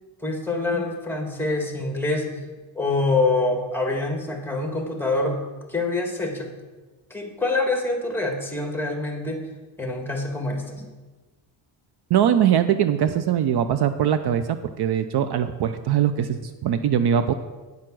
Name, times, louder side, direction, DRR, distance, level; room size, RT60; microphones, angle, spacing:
voice 1, 0.2-2.3 2.8-5.4 5.7-6.5 7.1-9.4 9.8-10.9, left 2 dB, 5° left, 2 dB, 1.7 m, -25 dB
voice 2, 12.1-17.3, right 9 dB, 55° right, 11 dB, 0.6 m, -21 dB
9.7 x 6.7 x 6.1 m, 1.3 s
cardioid pair, 120°, 47 cm